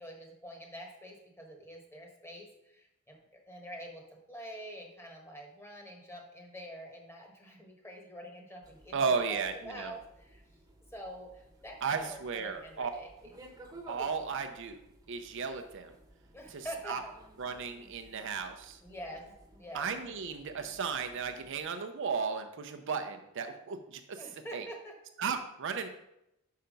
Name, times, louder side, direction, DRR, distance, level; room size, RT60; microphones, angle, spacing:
voice 1, 0.0-4.0 4.3-10.4 10.9-13.1 16.3-17.1 18.8-19.2 19.6-19.9 24.2-24.9, equal, 10° left, 1 dB, 1.2 m, -46 dB
sound 1, 8.6-21.7, right 1 dB, 15° right, 1.0 m, -56 dB
voice 2, 8.9-9.9 11.8-12.9 13.9-14.8 15.1-15.9 16.5-17.0 17.4-18.8 19.7-24.2 24.5-24.7 25.2-25.9, right 5 dB, 60° right, 6 dB, 0.6 m, -35 dB
5.7 x 5.6 x 5.2 m, 0.85 s
head